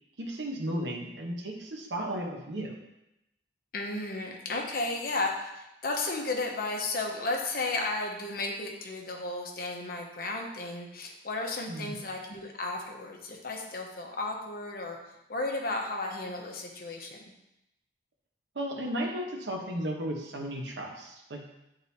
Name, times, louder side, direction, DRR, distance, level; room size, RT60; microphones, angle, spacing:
voice 1, 0.2-2.8 11.7-12.0 18.5-21.4, right 1 dB, 85° right, 1 dB, 1.1 m, -34 dB
voice 2, 3.7-15.0 15.3-17.3, left 2 dB, 55° left, 1 dB, 1.0 m, -34 dB
9.3 x 3.9 x 2.8 m, 0.90 s
head